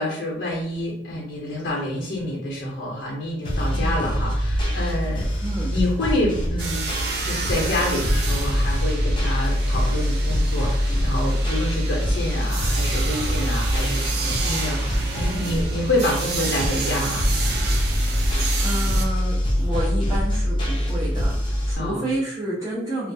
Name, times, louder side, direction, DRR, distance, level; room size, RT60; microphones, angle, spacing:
voice 1, 0.0-5.4 5.7-6.9 7.2-17.3 21.8-22.0, left 1 dB, 80° left, -2 dB, 0.5 m, -27 dB
sound 1, 3.4-21.7, equal, 25° left, 0.5 m, -24 dB
voice 2, 3.7-4.0 5.4-5.7 18.1-23.1, right 1 dB, 20° right, -12 dB, 0.6 m, -30 dB
sound 2, 6.6-19.1, right 4 dB, 60° right, 0.5 m, -31 dB
2.2 x 2.2 x 2.6 m, 0.76 s
head